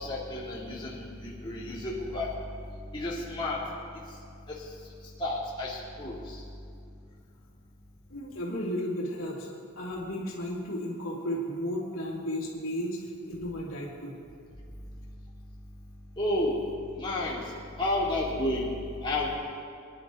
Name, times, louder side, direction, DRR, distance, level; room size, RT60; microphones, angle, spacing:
voice 1, 0.0-2.3 2.9-3.6 4.5-4.7 5.2-6.4 16.2-16.6 17.0-17.4 17.8-18.7 19.0-19.3, left 1 dB, 20° left, -6 dB, 2.6 m, -31 dB
voice 2, 8.1-9.5 9.8-14.2, equal, 70° left, -4 dB, 2.7 m, -34 dB
24.5 x 10.5 x 3.8 m, 2.4 s
head